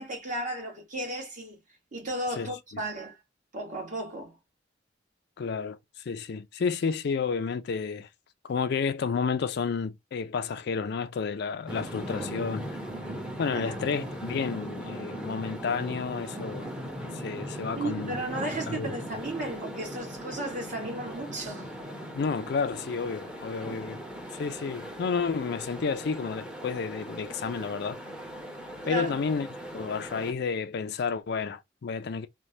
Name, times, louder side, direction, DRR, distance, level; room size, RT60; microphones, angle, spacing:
voice 1, 0.0-1.6 1.9-3.2 3.5-4.4 13.5-13.8 17.7-21.7 28.8-29.2, right 1 dB, 45° right, 1.4 m, -34 dB
voice 2, 5.4-5.8 6.1-8.1 8.5-12.7 13.4-16.7 17.1-18.2 18.7-19.0 22.1-24.0 24.3-28.0 28.9-29.5 29.7-32.3, left 5 dB, 60° left, 0.4 m, -31 dB
sound 1, 11.7-30.3, equal, 5° right, 0.7 m, -39 dB
3.2 x 2.2 x 2.6 m
head